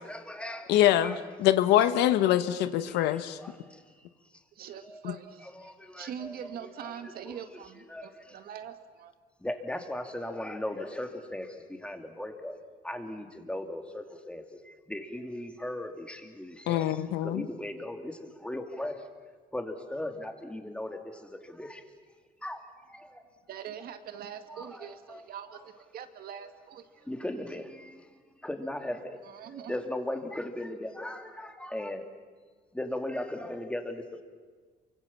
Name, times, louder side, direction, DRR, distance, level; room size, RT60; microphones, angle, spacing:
voice 1, 0.1-1.2 2.9-3.8 4.8-5.0 5.6-6.5 6.8-7.4 7.9-8.1 9.4-12.6 12.8-16.9 17.2-21.8 22.4-22.6 22.9-23.2 24.5-25.2 27.1-28.0 28.4-29.2 29.5-32.1 32.7-34.2, left 1 dB, 5° left, 6 dB, 2.6 m, -38 dB
voice 2, 0.7-3.4 5.0-5.1 16.7-17.5, left 12 dB, 90° left, 12 dB, 1.2 m, -24 dB
voice 3, 4.6-9.1 23.5-27.1 29.2-29.7, right 9 dB, 60° right, 8 dB, 1.9 m, -43 dB
29.0 x 24.5 x 7.2 m, 1.5 s
cardioid pair, 110°, 17 cm